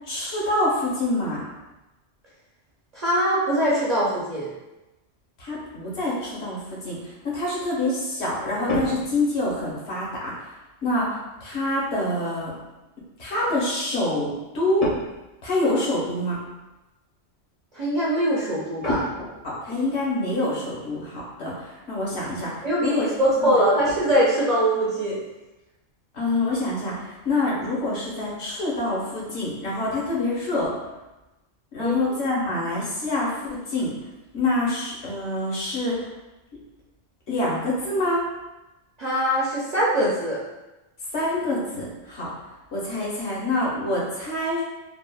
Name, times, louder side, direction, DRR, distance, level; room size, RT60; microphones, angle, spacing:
voice 1, 0.1-1.4 5.4-10.3 10.8-12.5 13.2-14.9 15.4-16.4 19.4-22.5 22.8-23.6 26.1-26.9 27.2-30.7 31.7-33.9 34.3-36.0 37.3-38.3 41.1-42.3 42.7-44.6, left 1 dB, 65° left, -5 dB, 1.0 m, -26 dB
voice 2, 2.9-4.5 17.7-19.1 22.6-25.2 31.8-32.0 39.0-40.4, equal, 50° right, -8 dB, 0.5 m, -22 dB
sound 1, 8.7-9.8 10.8-11.0 14.8-15.3 15.6-15.7 16.3-16.5 18.8-19.8 21.2-21.3 21.7-21.8 22.3-22.5 22.9-23.0 23.4-24.1, left 1 dB, 40° left, 0.6 m, -31 dB
3.4 x 2.0 x 2.2 m, 1.0 s
omnidirectional pair, 1.2 m